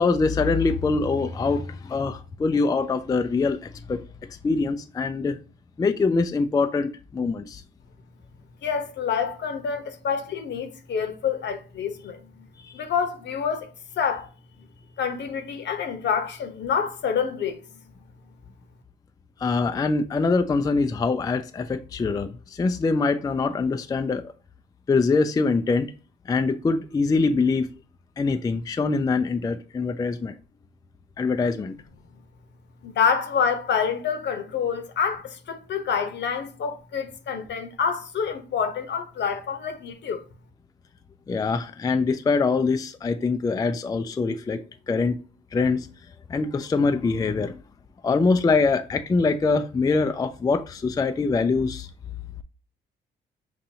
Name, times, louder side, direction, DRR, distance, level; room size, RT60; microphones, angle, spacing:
voice 1, 0.0-4.0 4.4-5.4 5.8-7.6 12.6-12.7 19.4-24.3 24.9-25.9 26.3-27.7 28.2-30.4 31.2-31.8 41.3-45.2 45.5-45.9 46.3-47.6 48.0-51.9, left 4 dB, 20° left, 0.3 m, -24 dB
voice 2, 8.6-12.4 12.7-13.7 14.0-14.3 15.0-17.6 32.8-40.2, left 6 dB, 60° left, 0.9 m, -27 dB
5.5 x 2.5 x 2.8 m
cardioid pair, 90°, 20 cm